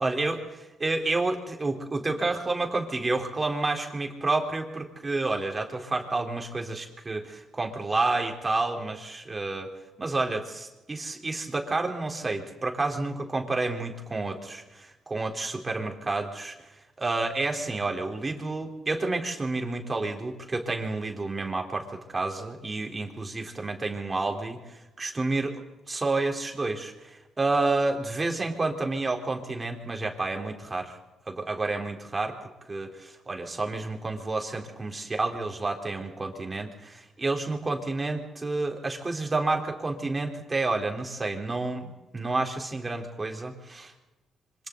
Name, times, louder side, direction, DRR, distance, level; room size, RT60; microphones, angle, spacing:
voice 1, 0.0-0.4 0.8-9.7 10.0-16.6 17.0-31.0 31.3-32.4 32.7-43.9, right 3 dB, 25° right, 2 dB, 3.8 m, -30 dB
27.0 x 25.5 x 4.0 m, 1.0 s
cardioid pair, 90°, 0 cm